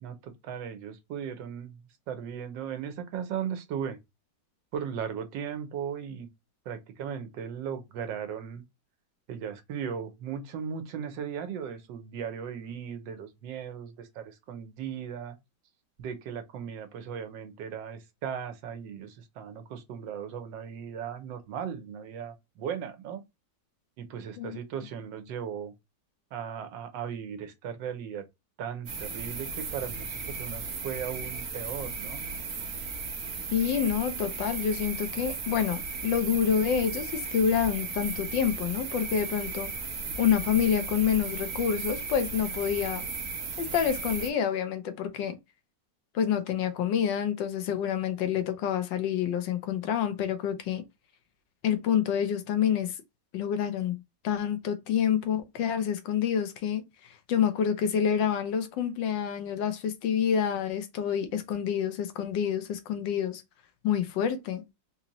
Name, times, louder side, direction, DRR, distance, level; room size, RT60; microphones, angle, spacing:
voice 1, 0.0-4.0 4.7-6.3 6.7-8.6 9.3-15.4 16.0-23.2 24.0-25.7 26.3-28.2 28.6-32.2, right 8 dB, 85° right, 1.4 m, -37 dB
sound 1, 28.9-44.3, right 4 dB, 50° right, 0.8 m, -36 dB
voice 2, 33.5-39.7 40.2-43.0 43.6-45.4 46.1-50.8 51.6-53.0 53.3-56.8 57.3-63.4 63.8-64.6, left 8 dB, 90° left, 1.4 m, -28 dB
4.0 x 2.6 x 2.9 m
omnidirectional pair, 1.9 m